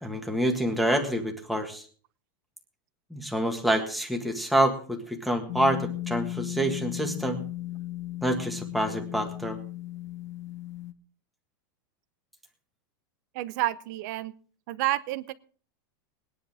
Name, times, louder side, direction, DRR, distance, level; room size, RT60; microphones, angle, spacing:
voice 1, 0.0-1.8 3.1-7.4 8.2-9.6, right 1 dB, ahead, 2 dB, 1.7 m, -27 dB
sound 1, 5.5-10.9, left 16 dB, 45° left, 0.9 m, -36 dB
voice 2, 13.3-14.3 14.7-15.3, right 16 dB, 50° right, 15 dB, 0.8 m, -29 dB
20.0 x 10.5 x 3.5 m, 0.42 s
supercardioid pair, 165°, 12 cm